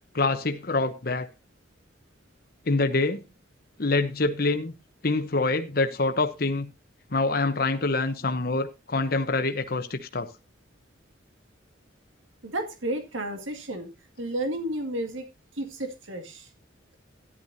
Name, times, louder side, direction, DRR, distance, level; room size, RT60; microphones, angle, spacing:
voice 1, 0.1-1.3 2.7-3.2 3.8-4.7 5.0-6.7 7.1-10.3, left 3 dB, 50° left, 0.9 m, -25 dB
voice 2, 12.4-13.9 14.2-15.3 15.5-16.5, right 1 dB, 85° right, 2.1 m, -32 dB
13.5 x 11.5 x 2.7 m
head